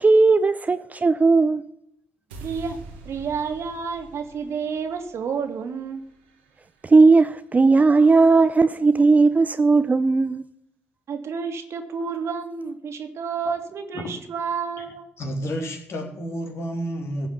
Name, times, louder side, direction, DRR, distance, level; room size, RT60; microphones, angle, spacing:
voice 1, 0.0-1.6 6.8-10.4, right 3 dB, 30° right, 0.6 m, -17 dB
sound 1, 2.3-8.5, right 2 dB, 85° right, 1.8 m, -46 dB
voice 2, 2.4-2.8 3.1-6.0 11.1-15.1, right 6 dB, 55° right, 2.2 m, -30 dB
voice 3, 14.8-17.3, equal, 55° left, 3.3 m, -31 dB
15.5 x 5.5 x 8.2 m
hypercardioid pair, 45°, 5 cm